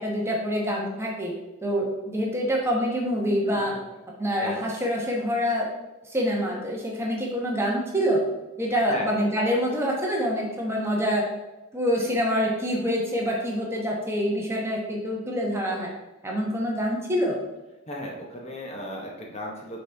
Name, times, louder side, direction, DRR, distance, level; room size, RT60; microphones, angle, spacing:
voice 1, 0.0-1.3 1.6-3.7 4.2-5.7 6.1-8.2 8.6-11.3 11.7-15.9 16.2-17.4, equal, 10° right, -2 dB, 1.0 m, -26 dB
voice 2, 17.9-19.8, left 1 dB, 30° left, 0 dB, 0.9 m, -35 dB
6.0 x 4.2 x 4.5 m, 1.0 s
head